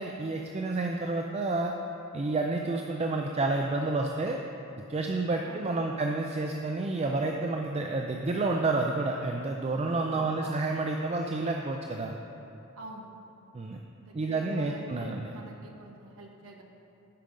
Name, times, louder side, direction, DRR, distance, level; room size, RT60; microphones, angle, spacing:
voice 1, 0.0-1.7 2.1-4.4 4.9-12.2 13.5-13.8 14.1-15.3, right 3 dB, 30° right, 2 dB, 0.4 m, -29 dB
voice 2, 5.4-6.0 10.1-10.7 12.7-13.1 14.0-16.6, right 2 dB, 80° right, 1 dB, 1.1 m, -46 dB
11.5 x 5.0 x 5.2 m, 2.9 s
head